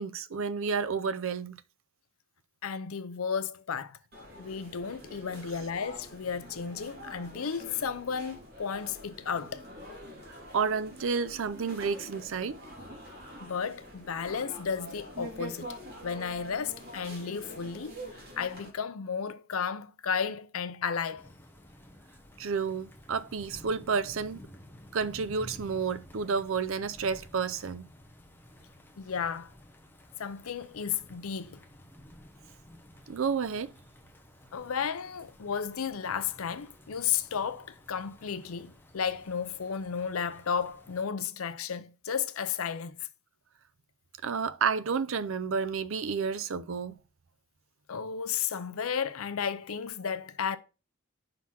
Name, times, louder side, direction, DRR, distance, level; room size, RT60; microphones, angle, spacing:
voice 1, 0.0-1.6 10.5-12.6 22.4-24.4 24.9-27.9 33.1-33.7 44.2-47.0, right 5 dB, 65° right, 0.5 m, -30 dB
voice 2, 2.6-4.0 4.4-9.6 13.4-15.8 16.0-18.0 18.4-21.3 29.0-29.5 30.2-31.6 34.5-43.0 47.9-50.6, left 7 dB, 75° left, 0.6 m, -33 dB
sound 1, 4.1-18.7, equal, 50° right, 2.5 m, -46 dB
sound 2, 21.2-41.0, equal, 10° left, 0.8 m, -53 dB
5.8 x 3.8 x 6.1 m
head